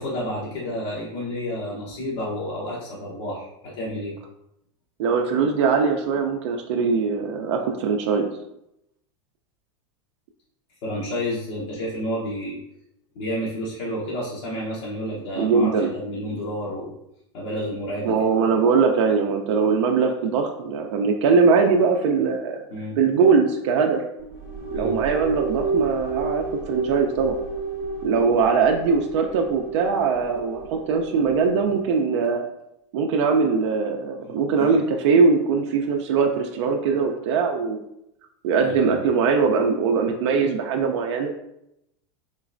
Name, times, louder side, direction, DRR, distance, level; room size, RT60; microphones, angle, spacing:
voice 1, 0.0-4.2 10.8-12.6 13.1-17.0 17.3-18.1 22.7-23.0 24.7-25.0 34.2-34.7 38.6-39.0, equal, 80° left, -6 dB, 1.0 m, -30 dB
voice 2, 5.0-8.3 15.4-16.0 18.0-22.6 23.0-24.0 24.7-27.4 28.0-32.4 32.9-37.8 38.4-41.3, right 5 dB, 75° right, 3 dB, 0.4 m, -21 dB
sound 1, 24.2-31.8, right 3 dB, 15° right, 0.7 m, -31 dB
3.7 x 3.1 x 2.5 m, 0.81 s
supercardioid pair, 140°, 15 cm